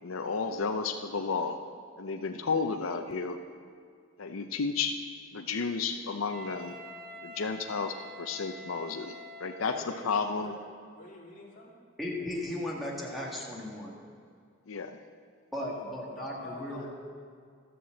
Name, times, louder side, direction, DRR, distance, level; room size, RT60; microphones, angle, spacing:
voice 1, 0.0-1.6 2.0-3.4 4.2-5.0 5.3-6.8 7.2-9.7 10.0-10.5 14.7-15.0, left 5 dB, 85° left, 6 dB, 0.6 m, -32 dB
Wind instrument woodwind instrument, 6.3-10.1, equal, 45° right, 3.4 m, -47 dB
voice 2, 9.6-11.7 15.6-16.9, left 1 dB, 40° left, -3 dB, 2.3 m, -46 dB
voice 3, 12.0-14.0 15.5-16.9, left 1 dB, ahead, -4 dB, 1.7 m, -36 dB
13.0 x 6.8 x 7.6 m, 2.2 s
head